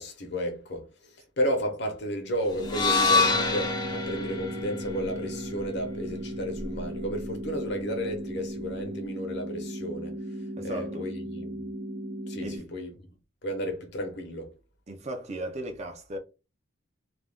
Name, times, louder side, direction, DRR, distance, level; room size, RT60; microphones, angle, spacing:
voice 1, 0.0-11.6 12.3-13.2 13.4-14.5, equal, 55° left, 0.8 m, -33 dB
sound 1, 2.6-6.8, left 4 dB, 20° left, 0.5 m, -27 dB
sound 2, 2.6-12.6, right 1 dB, 90° right, 0.9 m, -37 dB
voice 2, 10.6-11.1 12.4-12.6 14.9-16.2, right 1 dB, 35° right, 0.4 m, -36 dB
2.5 x 2.2 x 3.4 m
head